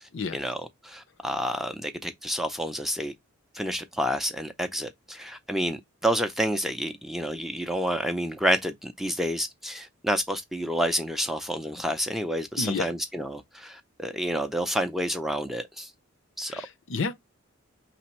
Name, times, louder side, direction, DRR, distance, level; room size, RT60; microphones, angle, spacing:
voice 1, 0.0-3.1 3.5-15.9 16.4-16.6, equal, ahead, 0.5 m, -29 dB
voice 2, 12.6-12.9 16.5-17.1, left 4 dB, 60° left, 0.6 m, -30 dB
4.9 x 3.4 x 2.9 m
head